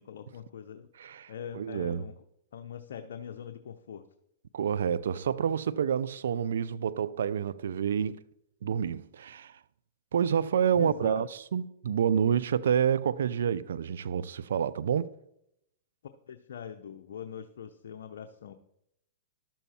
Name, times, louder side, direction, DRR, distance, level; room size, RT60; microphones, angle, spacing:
voice 1, 0.0-0.9 1.3-2.2 2.5-4.1 10.7-11.3 16.3-18.5, left 8 dB, 75° left, 0.7 m, -42 dB
voice 2, 1.0-2.0 4.5-8.2 8.6-9.5 10.1-15.1, right 8 dB, 80° right, 0.4 m, -28 dB
12.0 x 7.2 x 4.3 m
hypercardioid pair, 125°, 0 cm